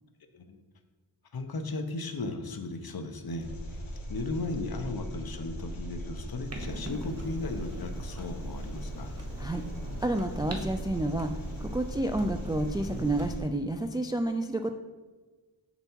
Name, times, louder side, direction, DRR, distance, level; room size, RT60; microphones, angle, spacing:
voice 1, 1.3-9.1, left 2 dB, 50° left, 6 dB, 0.9 m, -36 dB
Engine, 3.4-13.4, equal, 80° left, 1.9 m, -39 dB
Clock, 6.5-13.3, right 1 dB, 30° right, 1.3 m, -42 dB
voice 2, 10.0-14.7, right 1 dB, 10° right, 7 dB, 0.3 m, -30 dB
7.0 x 6.8 x 4.5 m, 1.3 s
wide cardioid pair, 85°, 47 cm